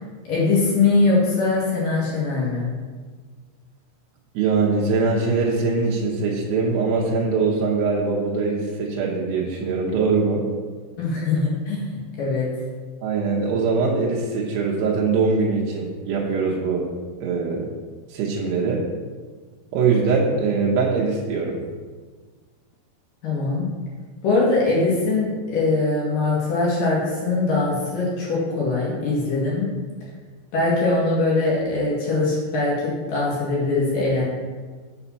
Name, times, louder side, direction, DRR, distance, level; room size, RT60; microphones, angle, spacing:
voice 1, 0.2-2.7 11.0-12.5 23.2-23.7 24.2-29.7 30.5-34.2, left 3 dB, 55° left, -5 dB, 3.0 m, -22 dB
voice 2, 4.3-10.4 13.0-16.8 17.2-17.7 18.1-18.8 19.7-21.6, right 4 dB, 75° right, -3 dB, 2.7 m, -22 dB
7.1 x 5.7 x 5.6 m, 1.5 s
omnidirectional pair, 5.4 m